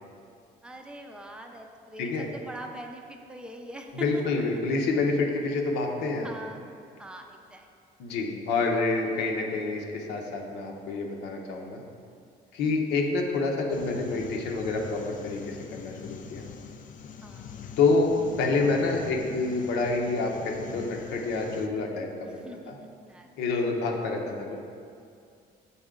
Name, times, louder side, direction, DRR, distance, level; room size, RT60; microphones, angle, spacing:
voice 1, 0.6-4.2 6.2-6.6 7.0-7.7 12.6-13.0 17.2-17.5 22.3-23.3, right 1 dB, 5° right, 3 dB, 0.5 m, -43 dB
voice 2, 3.9-6.3 8.0-11.8 12.5-16.4 17.8-18.1 18.4-22.4 22.7-22.8 23.4-24.6, left 3 dB, 85° left, 1 dB, 0.8 m, -27 dB
sound 1, 13.7-21.7, left 6 dB, 50° left, 0.4 m, -43 dB
6.9 x 4.2 x 3.7 m, 2.4 s
cardioid pair, 110°, 17 cm